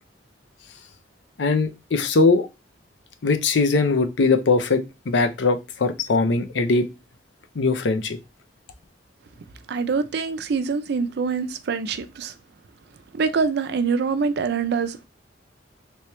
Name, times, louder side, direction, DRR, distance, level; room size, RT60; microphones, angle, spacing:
voice 1, 1.4-2.5 3.2-6.9 7.5-8.2, left 3 dB, 80° left, 0.6 m, -21 dB
voice 2, 9.7-12.3 13.1-15.1, right 5 dB, 60° right, 0.4 m, -25 dB
3.3 x 3.0 x 3.0 m
head